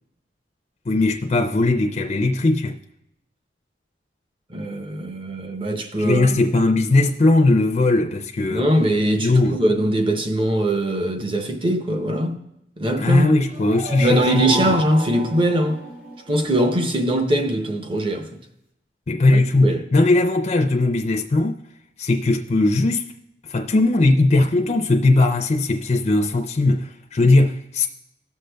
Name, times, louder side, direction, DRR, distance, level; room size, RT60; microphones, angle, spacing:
voice 1, 0.9-2.8 6.0-8.7 9.2-9.6 13.0-14.7 19.1-21.6 22.0-23.0 23.5-27.9, left 2 dB, 35° left, 0.4 m, -19 dB
voice 2, 4.5-6.5 8.5-12.4 12.8-13.4 14.0-15.8 16.3-18.4 19.3-19.9, right 1 dB, 30° right, 0.7 m, -22 dB
sound 1, 13.3-16.2, right 3 dB, 50° right, 2.2 m, -31 dB
17.5 x 6.4 x 2.2 m
head